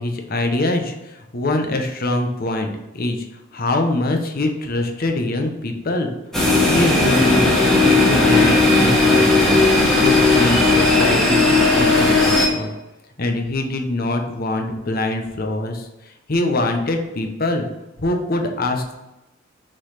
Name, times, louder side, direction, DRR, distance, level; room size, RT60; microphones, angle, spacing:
voice 1, 0.0-3.3 3.5-6.1 6.7-9.7 10.0-12.7 13.2-17.7 18.0-19.0, left 2 dB, 50° left, 4 dB, 0.9 m, -23 dB
sound 1, 6.3-12.5, left 2 dB, 5° left, 1.8 m, -15 dB
6.5 x 4.0 x 4.9 m, 0.98 s
head